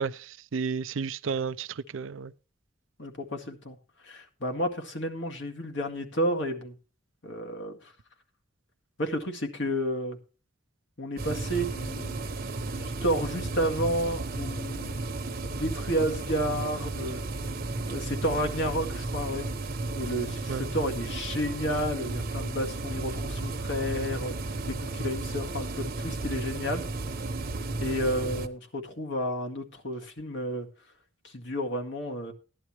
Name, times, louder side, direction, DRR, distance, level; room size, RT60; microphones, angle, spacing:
voice 1, 0.0-2.3 20.5-20.6, right 5 dB, 85° right, 0.5 m, -32 dB
voice 2, 3.0-3.8 4.0-6.7 7.2-7.9 9.0-10.2 11.0-12.3 12.7-15.0 15.5-17.2 17.9-19.5 19.9-26.8 27.8-30.7 31.2-32.3, equal, 65° left, 1.9 m, -31 dB
sound 1, 11.2-28.5, right 2 dB, 50° right, 0.9 m, -34 dB
16.0 x 11.0 x 3.1 m
head